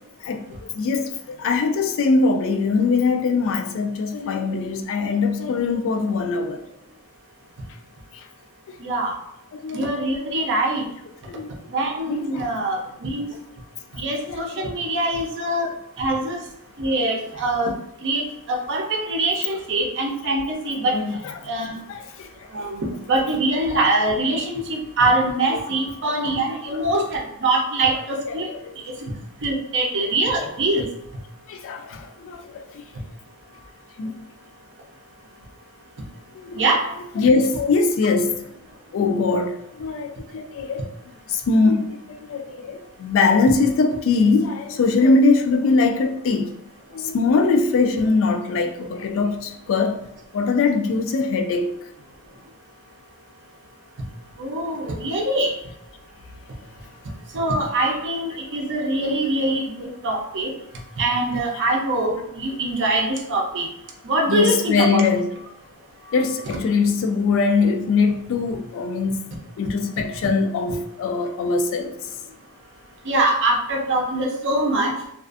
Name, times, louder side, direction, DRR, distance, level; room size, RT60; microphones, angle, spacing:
voice 1, 0.2-6.6 8.1-8.3 8.7-8.8 9.5-9.8 11.3-11.5 12.1-12.4 14.3-14.7 20.9-21.3 21.9-22.7 26.7-26.8 28.3-28.7 31.5-32.8 34.0-34.2 36.3-36.6 37.2-38.4 38.9-46.6 46.9-50.0 50.3-51.7 64.3-65.3 66.1-69.3 69.6-72.0, left 4 dB, 60° left, 0.3 m, -22 dB
voice 2, 8.8-9.2 9.7-10.8 11.7-13.3 14.0-15.7 16.0-16.4 16.8-17.7 18.0-21.0 21.5-21.8 22.5-28.5 29.4-30.9 36.5-36.8 54.4-55.5 57.3-60.5 61.0-63.7 64.0-65.1 66.5-66.6 73.1-74.9, right 2 dB, 55° right, 0.5 m, -23 dB
2.4 x 2.3 x 2.4 m
head